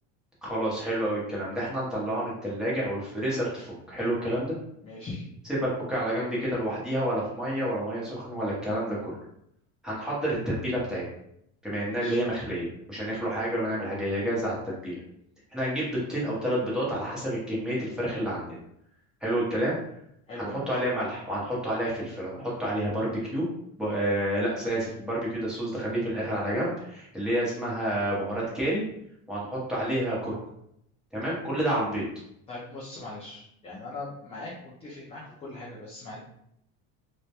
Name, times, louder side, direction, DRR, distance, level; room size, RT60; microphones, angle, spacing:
voice 1, 0.4-4.5 5.5-9.2 9.8-11.0 11.6-15.0 15.5-18.6 19.2-19.8 20.4-23.5 23.8-28.8 29.3-30.4 31.1-32.0, right 1 dB, ahead, -7 dB, 0.7 m, -29 dB
voice 2, 4.8-5.3 11.8-12.2 20.3-20.7 32.5-36.2, left 2 dB, 20° left, -6 dB, 0.3 m, -40 dB
2.2 x 2.1 x 2.7 m, 0.75 s
cardioid pair, 145°, 36 cm